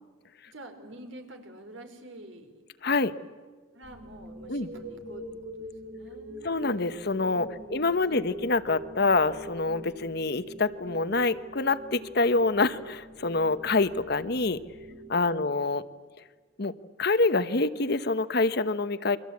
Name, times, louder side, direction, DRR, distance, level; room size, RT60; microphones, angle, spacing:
voice 1, 0.5-2.6 3.7-6.6 7.5-8.4 14.9-15.0, right 1 dB, 65° right, 6 dB, 4.0 m, -48 dB
voice 2, 2.8-3.1 4.5-4.7 6.4-14.6 15.1-15.9 16.6-19.2, left 3 dB, 50° left, 13 dB, 0.9 m, -26 dB
sound 1, 3.8-15.9, equal, 50° right, 6.9 m, -44 dB
29.5 x 23.5 x 8.5 m, 1.5 s
head